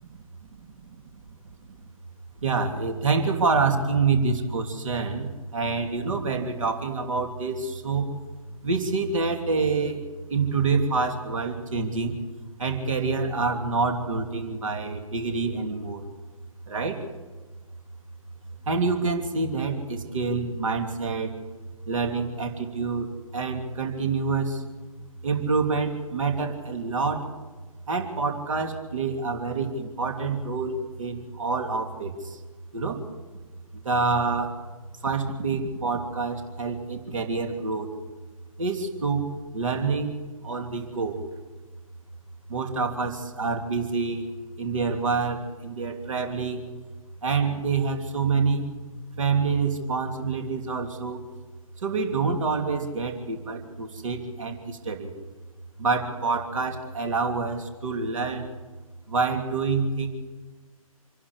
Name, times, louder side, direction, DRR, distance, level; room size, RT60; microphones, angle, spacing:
voice 1, 2.4-8.1 8.6-10.0 10.3-12.2 12.6-16.0 16.7-17.0 18.6-21.3 21.9-23.1 23.3-24.6 25.2-27.3 27.9-32.4 32.7-33.0 33.7-34.6 35.0-37.9 38.6-40.2 40.4-41.2 42.5-44.3 44.6-46.6 47.2-48.6 49.2-51.2 51.8-55.1 55.8-58.5 59.1-60.1, right 4 dB, 60° right, 5 dB, 3.1 m, -27 dB
27.0 x 11.5 x 9.8 m, 1.3 s
figure-of-eight pair, 135°, 18 cm